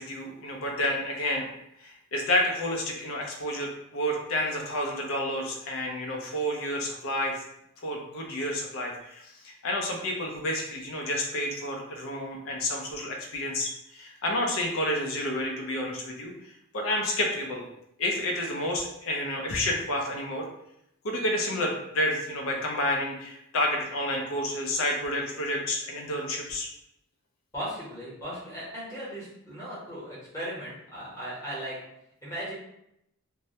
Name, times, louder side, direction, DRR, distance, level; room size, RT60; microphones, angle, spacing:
voice 1, 0.0-1.5 1.8-7.4 7.8-16.3 16.7-17.6 18.0-20.5 21.0-26.7, left 1 dB, 70° left, 0 dB, 0.5 m, -30 dB
voice 2, 27.5-31.8 32.2-32.5, equal, 15° left, -8 dB, 0.9 m, -37 dB
2.2 x 2.0 x 2.7 m, 0.79 s
head